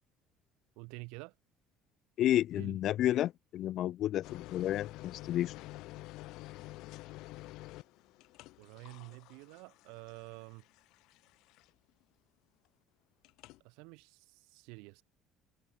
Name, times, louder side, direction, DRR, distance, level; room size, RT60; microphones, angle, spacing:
voice 1, 0.7-1.3 2.5-2.8 8.6-10.6 13.6-15.0, right 31 dB, 85° right, 1.7 m, -49 dB
voice 2, 2.2-5.7, left 12 dB, 50° left, 0.7 m, -31 dB
sound 1, 4.2-11.9 13.2-13.6, left 19 dB, 65° left, 6.9 m, -49 dB
cardioid pair, 155°, 0 cm